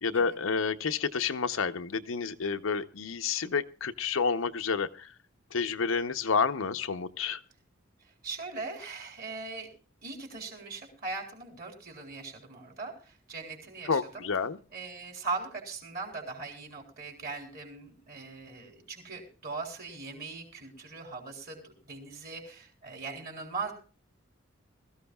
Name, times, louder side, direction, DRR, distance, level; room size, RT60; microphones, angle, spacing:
voice 1, 0.0-5.1 5.5-7.4 13.9-14.6, left 5 dB, 90° left, 9 dB, 0.7 m, -29 dB
voice 2, 8.2-9.7 10.0-14.3 14.7-23.7, right 4 dB, 50° right, 2 dB, 3.8 m, -40 dB
21.5 x 14.0 x 2.3 m, 0.36 s
head